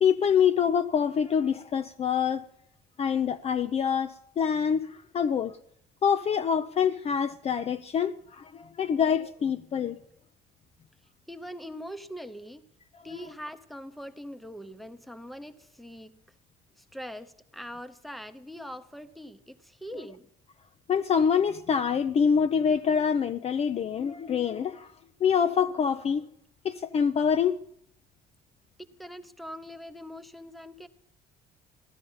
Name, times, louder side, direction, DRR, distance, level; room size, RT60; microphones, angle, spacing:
voice 1, 0.0-2.4 3.0-5.6 6.0-10.0 20.9-24.9 25.2-26.2 26.6-27.6, left 7 dB, 40° left, 0.5 m, -25 dB
voice 2, 11.3-12.6 13.0-16.2 16.8-20.3 29.0-30.9, equal, ahead, 0.8 m, -42 dB
15.5 x 12.0 x 5.5 m
cardioid pair, 110°, 17 cm